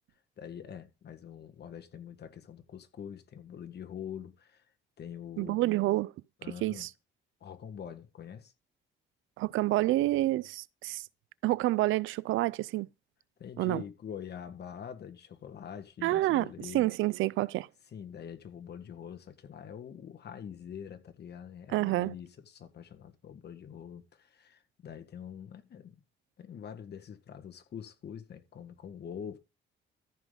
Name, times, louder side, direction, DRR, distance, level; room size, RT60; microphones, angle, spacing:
voice 1, 0.4-4.6 5.0-5.6 6.4-6.9 7.4-8.5 13.4-16.9 17.9-26.0 26.4-29.4, left 8 dB, 55° left, 1.7 m, -44 dB
voice 2, 5.4-6.1 6.6-6.9 9.4-11.1 11.4-12.9 13.6-13.8 16.0-17.7 21.7-22.1, right 17 dB, 80° right, 0.4 m, -28 dB
14.0 x 5.0 x 3.9 m
cardioid pair, 90°, 20 cm